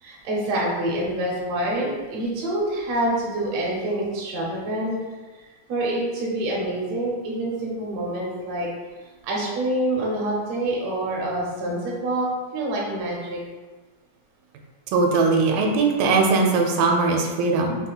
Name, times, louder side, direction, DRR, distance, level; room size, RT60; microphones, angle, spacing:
voice 1, 0.0-4.9 5.7-8.7 9.2-12.3 12.5-13.4, right 1 dB, 65° right, -4 dB, 1.7 m, -26 dB
voice 2, 14.9-17.8, right 4 dB, 90° right, 1 dB, 2.2 m, -20 dB
5.7 x 2.8 x 2.3 m, 1.3 s
omnidirectional pair, 3.8 m